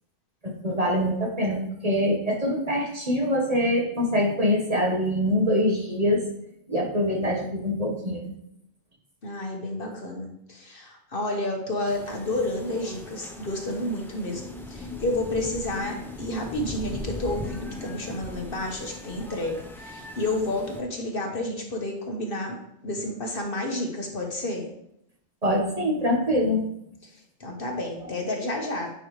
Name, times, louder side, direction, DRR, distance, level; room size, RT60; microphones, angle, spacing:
voice 1, 0.4-6.2 6.7-8.3 25.4-26.6, equal, 35° right, -1 dB, 1.4 m, -24 dB
voice 2, 9.2-14.4 14.7-22.6 22.8-24.7 27.0-28.9, left 1 dB, 55° left, 1 dB, 1.4 m, -30 dB
sound 1, 11.9-20.8, left 2 dB, 5° left, 0.5 m, -39 dB
9.0 x 5.7 x 3.2 m, 0.76 s
omnidirectional pair, 1.2 m